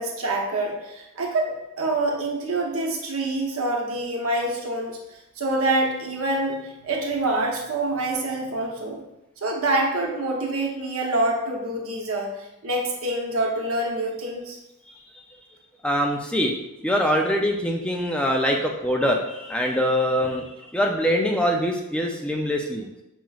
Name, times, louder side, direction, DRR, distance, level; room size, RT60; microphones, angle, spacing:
voice 1, 0.0-5.0 5.4-9.0 9.4-12.3 12.6-14.6, right 2 dB, 75° right, 0 dB, 0.9 m, -26 dB
voice 2, 15.8-16.5 16.8-22.9, equal, 5° left, 1 dB, 0.3 m, -23 dB
6.0 x 3.0 x 2.3 m, 0.90 s
head